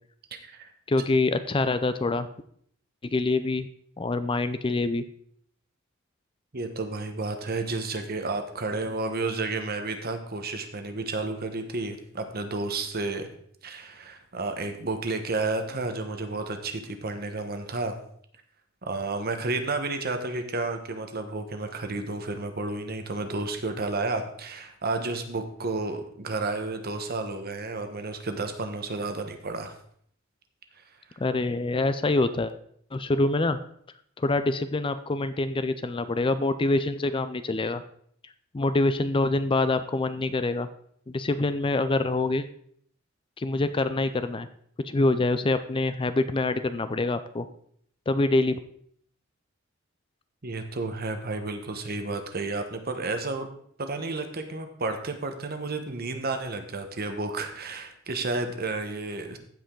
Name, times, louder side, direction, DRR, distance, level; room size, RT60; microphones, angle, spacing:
voice 1, 0.3-0.7 6.5-13.3 13.6-17.9 18.8-29.7 50.4-53.5 53.8-59.4, right 3 dB, 50° right, 7 dB, 1.1 m, -31 dB
voice 2, 0.9-2.3 3.0-3.7 4.0-5.0 31.2-32.5 32.9-33.6 34.2-37.8 38.5-40.7 41.1-42.5 43.4-44.5 44.8-47.5 48.1-48.6, left 2 dB, 25° left, 11 dB, 0.4 m, -25 dB
15.0 x 5.2 x 3.8 m, 0.63 s
head